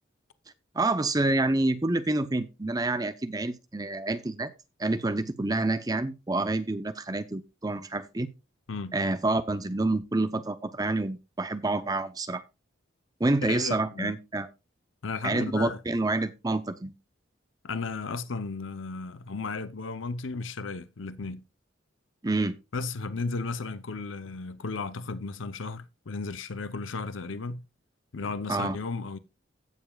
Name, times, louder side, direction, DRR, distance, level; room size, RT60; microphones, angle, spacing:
voice 1, 0.7-4.5 4.8-8.3 8.9-12.4 13.2-14.5 15.2-16.9 22.2-22.6 28.5-28.8, right 2 dB, 20° right, 0.6 m, -28 dB
voice 2, 13.4-14.1 15.0-15.8 17.6-21.4 22.7-27.6 28.1-29.2, left 4 dB, 90° left, 0.7 m, -34 dB
16.5 x 7.1 x 2.3 m
head